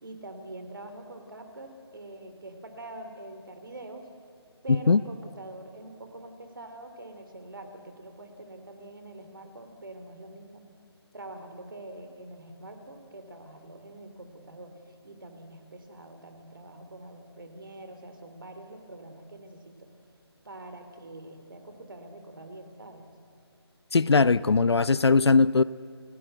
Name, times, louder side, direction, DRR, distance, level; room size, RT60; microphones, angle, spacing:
voice 1, 0.0-4.1 4.6-10.6 11.1-19.9 20.5-23.1, right 2 dB, 50° right, 7 dB, 3.4 m, -45 dB
voice 2, 4.7-5.0 23.9-25.6, left 4 dB, 70° left, 18 dB, 0.6 m, -20 dB
29.0 x 17.5 x 8.0 m, 2.5 s
figure-of-eight pair, 180°, 14 cm